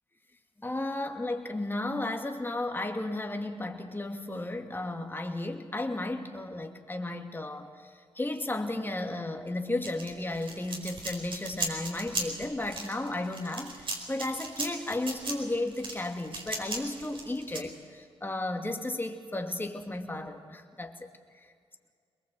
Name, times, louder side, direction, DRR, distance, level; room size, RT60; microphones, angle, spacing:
voice 1, 0.6-21.1 21.4-21.5, left 2 dB, 20° left, 4 dB, 2.5 m, -34 dB
sound 1, 9.8-17.6, right 2 dB, 50° right, 4.8 m, -37 dB
22.0 x 21.5 x 8.0 m, 2.2 s
cardioid pair, 60°, 11 cm